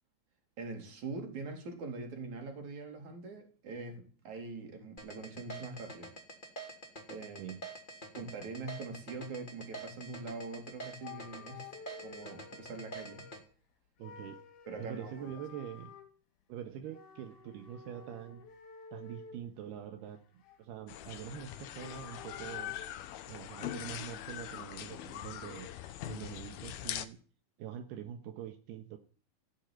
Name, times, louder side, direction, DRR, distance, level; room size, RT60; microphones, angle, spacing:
voice 1, 0.6-6.1 7.1-7.6 8.1-11.7 12.0-13.2 14.7-15.3, right 3 dB, 45° right, 4.8 m, -43 dB
sound 1, 5.0-13.4, right 2 dB, 15° left, 2.7 m, -46 dB
voice 2, 7.4-7.7 14.0-14.4 14.8-15.9 16.5-18.4 18.9-22.7 23.3-25.7 26.1-27.2 27.6-29.0, right 9 dB, 80° right, 3.3 m, -44 dB
sound 2, 10.5-10.6 11.0-13.5 14.0-16.1 16.9-19.4 19.9-20.8 21.6-22.9, left 6 dB, 55° left, 2.9 m, -51 dB
sound 3, 20.9-27.1, left 12 dB, 75° left, 2.9 m, -42 dB
16.5 x 8.6 x 9.2 m
omnidirectional pair, 4.7 m